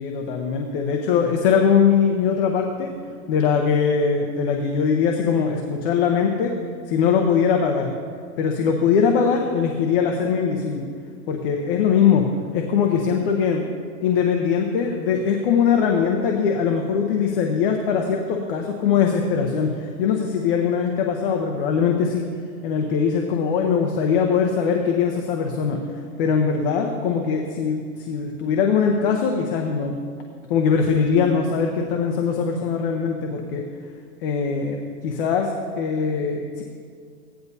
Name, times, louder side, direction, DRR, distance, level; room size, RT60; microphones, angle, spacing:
voice 1, 0.0-2.9 3.3-6.5 6.9-7.9 8.4-10.9 11.3-12.2 12.5-13.6 14.0-22.3 22.6-25.8 26.2-29.9 30.5-33.6 34.2-34.8 35.0-36.6, left 6 dB, 35° left, 2 dB, 0.8 m, -21 dB
16.5 x 10.5 x 2.7 m, 2.1 s
supercardioid pair, 160°, 46 cm